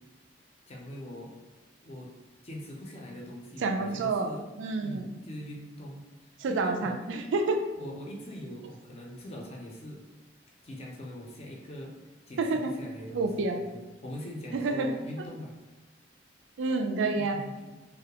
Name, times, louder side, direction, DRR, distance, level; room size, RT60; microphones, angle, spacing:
voice 1, 0.7-1.4 1.8-2.2 2.4-4.5 4.8-7.0 7.7-10.1 10.6-15.6 17.1-17.7, equal, 35° left, -1 dB, 0.4 m, -42 dB
voice 2, 3.6-4.3 4.6-5.0 6.4-7.6 12.4-12.7 13.1-13.6 14.5-14.9 16.6-17.4, right 3 dB, 80° right, 5 dB, 0.3 m, -28 dB
2.3 x 2.1 x 2.8 m, 1.2 s
head